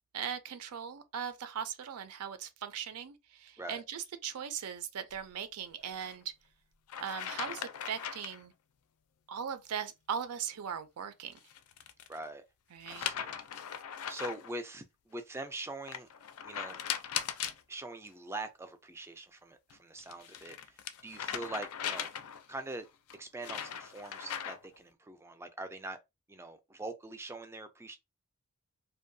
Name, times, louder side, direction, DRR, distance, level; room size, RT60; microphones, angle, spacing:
voice 1, 0.1-6.3 7.0-8.5 9.3-11.4 12.7-13.1, right 8 dB, 80° right, 0.4 m, -39 dB
sound 1, 5.9-6.1 6.9-8.4 11.3-12.2 12.9-14.5 15.9-17.6 19.7-22.5 23.1-24.8, left 9 dB, 75° left, 0.4 m, -39 dB
voice 2, 12.1-12.5 12.9-13.4 14.1-16.1 16.4-16.8 17.7-22.1 22.5-22.9 23.1-26.0 26.3-28.0, right 2 dB, 10° right, 0.3 m, -43 dB
2.6 x 2.2 x 2.6 m
head